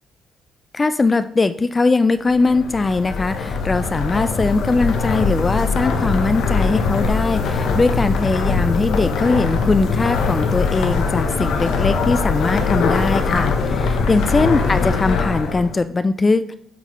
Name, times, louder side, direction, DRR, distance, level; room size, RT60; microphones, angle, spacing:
voice 1, 0.7-16.6, left 3 dB, 25° left, 12 dB, 0.3 m, -20 dB
sound 1, 2.3-15.8, left 4 dB, 75° left, 0.7 m, -21 dB
8.2 x 3.9 x 3.0 m, 0.67 s
cardioid pair, 90°, 0 cm